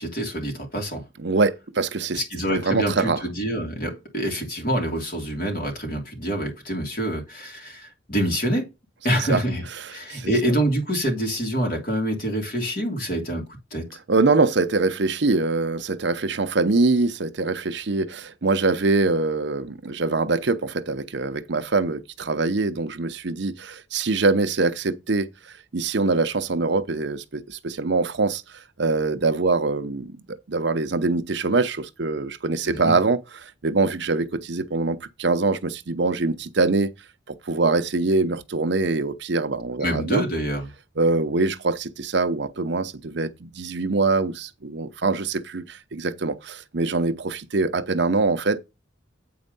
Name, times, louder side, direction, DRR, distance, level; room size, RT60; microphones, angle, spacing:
voice 1, 0.0-1.0 2.1-8.7 9.0-13.9 32.6-32.9 39.8-40.7, equal, 45° left, 3.1 m, -26 dB
voice 2, 1.2-2.2 2.5-3.2 9.3-9.4 10.1-10.3 14.1-36.9 37.3-40.2 41.0-48.6, right 3 dB, 60° right, 0.7 m, -24 dB
8.6 x 4.4 x 5.4 m
head